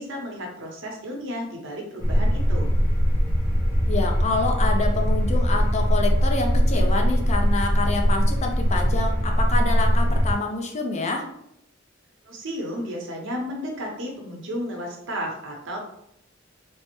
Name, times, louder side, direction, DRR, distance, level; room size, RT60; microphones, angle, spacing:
voice 1, 0.0-2.7 12.2-15.8, equal, 65° right, 0 dB, 0.8 m, -33 dB
sound 1, 2.0-10.3, equal, 10° left, 0.8 m, -21 dB
voice 2, 3.9-11.3, left 3 dB, 35° left, 3 dB, 0.5 m, -27 dB
3.3 x 2.0 x 2.9 m, 0.77 s
head